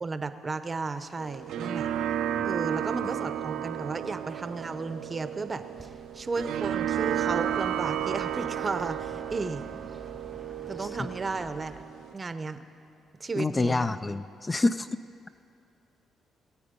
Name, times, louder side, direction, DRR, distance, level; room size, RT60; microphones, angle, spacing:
voice 1, 0.0-1.9 2.4-9.6 10.7-11.8 12.1-12.6 13.2-13.9, right 3 dB, 30° right, 10 dB, 0.7 m, -34 dB
sound 1, 1.2-12.1, right 10 dB, 80° right, 0.5 m, -33 dB
sound 2, 5.8-11.8, right 1 dB, ahead, 0.9 m, -49 dB
voice 2, 13.4-14.9, left 2 dB, 25° left, 11 dB, 0.3 m, -27 dB
21.0 x 8.5 x 5.2 m, 2.7 s
cardioid pair, 90°, 0 cm